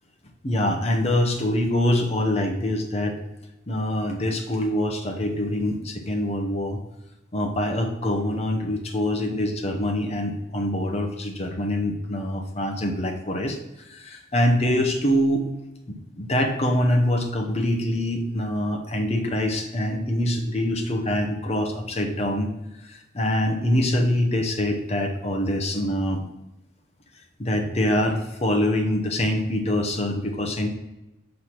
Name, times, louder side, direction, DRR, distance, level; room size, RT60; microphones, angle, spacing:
voice 1, 0.4-3.2 3.7-6.8 7.3-13.6 13.9-15.4 15.9-22.5 22.9-26.2 27.4-30.7, left 1 dB, 35° left, 3 dB, 0.8 m, -24 dB
5.8 x 3.3 x 5.8 m, 0.91 s
head